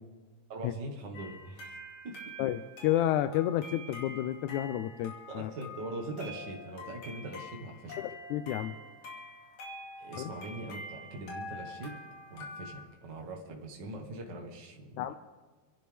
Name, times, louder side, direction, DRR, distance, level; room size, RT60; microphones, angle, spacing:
voice 1, 0.5-1.8 2.0-2.3 5.3-8.0 10.0-11.9 12.3-15.1, right 2 dB, 45° right, 0 dB, 1.7 m, -42 dB
sound 1, 1.1-12.8, left 1 dB, 70° left, 3.7 m, -46 dB
voice 2, 2.4-5.5 8.0-8.7 10.2-10.3 15.0-15.1, left 12 dB, 90° left, 11 dB, 2.0 m, -31 dB
29.0 x 11.5 x 3.4 m, 1.4 s
omnidirectional pair, 3.3 m